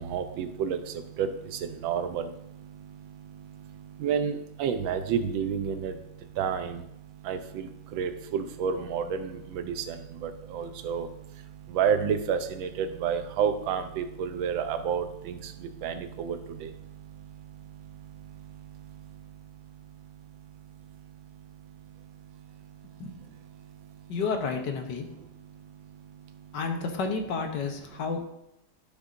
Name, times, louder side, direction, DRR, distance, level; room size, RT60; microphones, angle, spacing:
voice 1, 0.1-0.8 1.2-1.3 1.8-2.2 4.0-5.9 6.4-6.7 7.3-7.4 8.0-9.2 10.2-11.1 11.7-15.0 15.8-16.4, right 7 dB, 85° right, 9 dB, 1.4 m, -28 dB
voice 2, 24.1-25.1 26.5-28.2, left 4 dB, 65° left, 4 dB, 1.5 m, -30 dB
12.0 x 7.0 x 2.6 m, 0.82 s
omnidirectional pair, 2.1 m